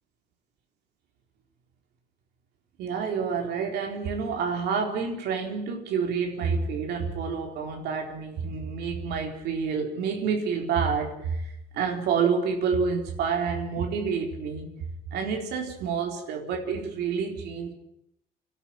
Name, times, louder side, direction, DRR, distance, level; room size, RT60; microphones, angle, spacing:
voice 1, 2.8-14.7 15.1-17.7, right 5 dB, 75° right, 2 dB, 4.1 m, -28 dB
28.5 x 12.5 x 9.0 m, 0.82 s
cardioid pair, 110°, 17 cm